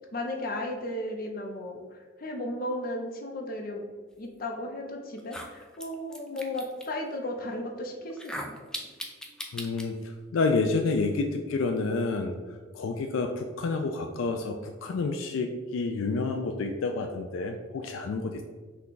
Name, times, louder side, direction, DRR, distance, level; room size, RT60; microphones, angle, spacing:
voice 1, 0.1-1.8 2.2-3.8 4.2-8.6, left 1 dB, 45° left, 2 dB, 0.6 m, -35 dB
sound 1, 4.6-4.7 5.2-6.9 8.1-9.9, equal, 5° left, 0.3 m, -39 dB
voice 2, 9.5-12.3 12.7-18.4, left 3 dB, 80° left, 5 dB, 0.4 m, -29 dB
5.9 x 2.3 x 3.8 m, 1.4 s
head